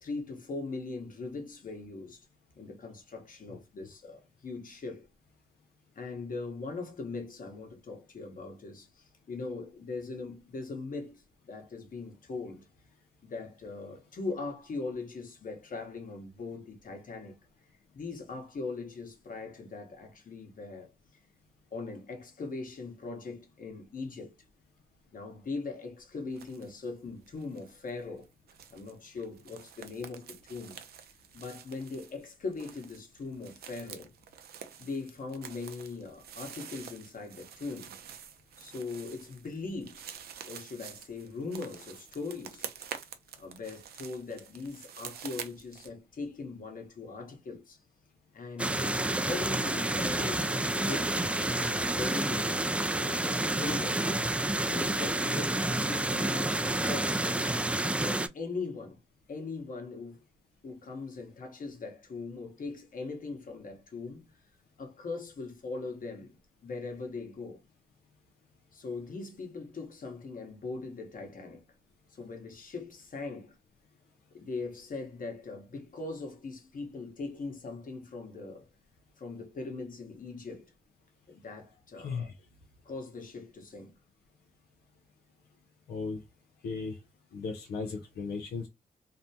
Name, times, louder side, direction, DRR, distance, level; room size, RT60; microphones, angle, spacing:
voice 1, 0.0-2.3 2.6-5.1 5.9-12.7 13.2-17.4 17.9-20.9 21.7-24.3 25.1-28.3 28.7-30.8 31.3-34.1 34.8-37.9 38.6-40.1 40.4-42.7 43.4-47.8 48.3-51.1 51.4-52.6 52.9-54.1 54.6-57.3 57.8-59.0 59.3-60.2 60.6-64.3 64.8-66.3 66.6-67.6 68.7-71.6 72.1-73.6 74.3-78.7 79.2-80.7 81.3-82.3 82.8-83.9, left 3 dB, 55° left, 1.1 m, -40 dB
sound 1, 26.3-26.8 27.0-45.9, right 8 dB, 75° right, 0.5 m, -47 dB
sound 2, 48.6-58.3, right 1 dB, 10° right, 0.3 m, -29 dB
voice 2, 85.9-86.2 86.6-87.0 87.3-88.7, left 4 dB, 85° left, 0.5 m, -36 dB
2.6 x 2.2 x 2.7 m
cardioid pair, 55°, 16 cm